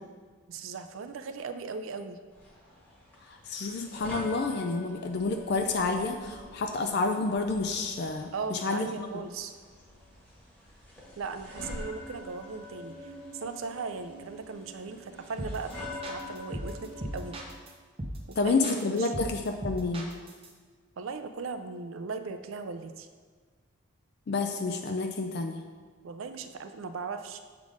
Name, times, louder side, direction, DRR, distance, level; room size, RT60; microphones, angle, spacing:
voice 1, 0.5-2.2 8.3-9.6 11.2-17.4 18.3-18.5 18.9-19.1 21.0-23.1 26.0-27.4, right 4 dB, 65° right, 9 dB, 0.4 m, -38 dB
sound 1, 2.3-17.6, left 1 dB, 10° left, 1.4 m, -45 dB
voice 2, 3.2-9.2 18.4-20.1 24.3-25.6, left 3 dB, 50° left, 5 dB, 0.4 m, -29 dB
sound 2, 15.4-15.7 16.0-17.7 18.0-18.3 18.6-20.5, right 1 dB, 25° right, 0.6 m, -37 dB
7.5 x 3.7 x 4.9 m, 1.5 s
head